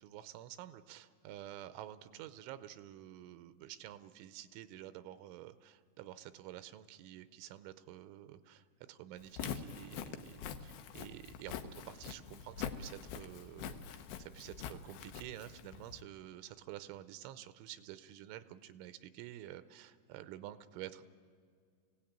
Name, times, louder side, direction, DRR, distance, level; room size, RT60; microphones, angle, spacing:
voice 1, 0.0-21.0, right 13 dB, 90° right, 12 dB, 3.2 m, -50 dB
Walk footsteps, 9.2-16.0, left 8 dB, 75° left, 2.3 m, -45 dB
26.0 x 17.0 x 8.8 m, 2.2 s
omnidirectional pair, 5.4 m